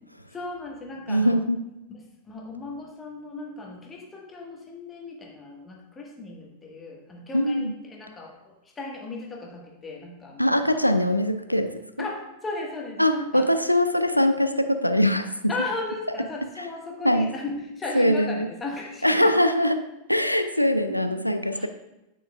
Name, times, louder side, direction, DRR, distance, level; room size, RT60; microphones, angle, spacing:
voice 1, 0.3-1.4 1.9-10.6 12.0-13.6 15.5-19.2 20.9-21.0 21.5-21.7, left 3 dB, 15° left, -1 dB, 1.5 m, -36 dB
voice 2, 1.1-1.6 7.3-7.7 10.4-12.1 13.0-15.5 17.0-17.3 17.9-18.5 19.0-21.7, equal, 90° left, 9 dB, 0.3 m, -22 dB
9.9 x 6.1 x 2.4 m, 0.96 s
figure-of-eight pair, 90°, 0 cm